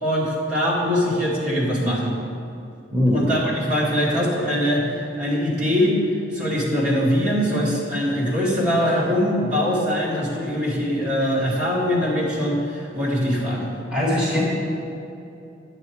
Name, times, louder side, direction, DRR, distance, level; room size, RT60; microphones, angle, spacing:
voice 1, 0.0-2.1 3.1-6.0 6.3-13.7, equal, 40° right, -6 dB, 2.2 m, -22 dB
voice 2, 2.9-3.2 13.9-14.5, left 1 dB, 5° right, -6 dB, 1.3 m, -20 dB
9.5 x 8.0 x 4.7 m, 2.7 s
head